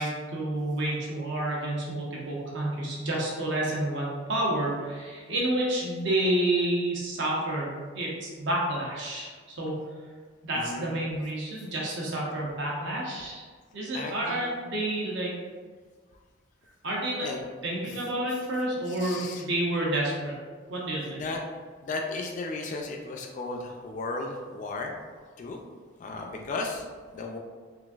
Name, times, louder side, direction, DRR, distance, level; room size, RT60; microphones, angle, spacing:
voice 1, 0.0-9.7 10.4-13.5 13.7-15.3 16.8-17.3 17.6-20.3 20.7-21.2, right 1 dB, 65° right, -4 dB, 0.8 m, -29 dB
voice 2, 10.5-10.9 13.9-14.4 17.2-17.5 19.0-19.4 21.1-21.4 21.8-24.9 25.4-25.6 26.0-26.8 27.1-27.4, left 3 dB, 40° left, 2 dB, 0.3 m, -35 dB
3.8 x 2.5 x 2.3 m, 1.5 s
head